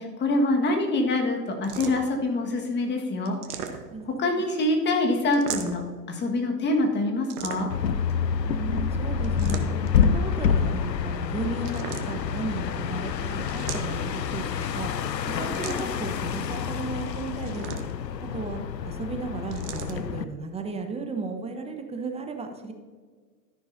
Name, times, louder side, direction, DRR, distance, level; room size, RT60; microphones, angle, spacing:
voice 1, 0.0-3.7 4.0-7.7, left 2 dB, 20° left, 2 dB, 1.7 m, -25 dB
sound 1, 1.6-2.2 3.3-4.1 5.3-6.0 7.3-7.9 9.2-10.0 11.6-12.4 13.5-14.2 15.5-16.1 17.4-18.1 19.5-20.0, right 7 dB, 65° right, 1.3 m, -37 dB
voice 2, 3.9-4.4 8.5-9.7 10.1-14.5 14.7-14.9 15.4-17.7 18.2-22.7, right 3 dB, 10° right, 5 dB, 1.0 m, -35 dB
sound 2, 7.7-20.2, left 7 dB, 85° left, 0.7 m, -28 dB
13.0 x 10.5 x 2.7 m, 1.5 s
figure-of-eight pair, 100°, 49 cm